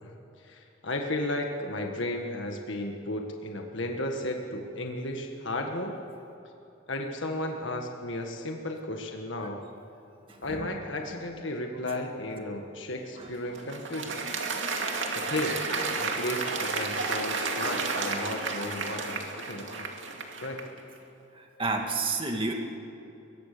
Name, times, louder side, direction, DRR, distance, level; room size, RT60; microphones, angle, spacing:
voice 1, 0.0-6.0 6.9-9.6 10.4-14.2 15.1-15.6 16.0-19.9 20.4-20.6, left 1 dB, 75° left, 3 dB, 1.6 m, -34 dB
voice 2, 10.3-10.7 11.9-12.0 13.2-13.3 21.3-22.5, right 3 dB, 25° right, 2 dB, 2.1 m, -31 dB
Applause, 13.2-20.8, right 4 dB, 75° right, 2.4 m, -32 dB
22.5 x 21.0 x 6.8 m, 2.9 s
head